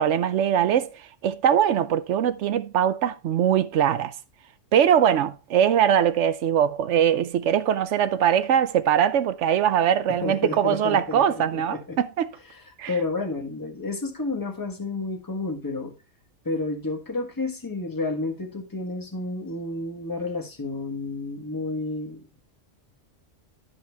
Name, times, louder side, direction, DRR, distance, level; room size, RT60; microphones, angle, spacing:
voice 1, 0.0-4.1 4.7-12.3 12.8-12.9, right 9 dB, 75° right, 1.0 m, -22 dB
voice 2, 10.1-12.0 12.5-16.0 16.4-22.3, left 3 dB, 15° left, 1.4 m, -31 dB
12.0 x 5.6 x 3.4 m
omnidirectional pair, 1.3 m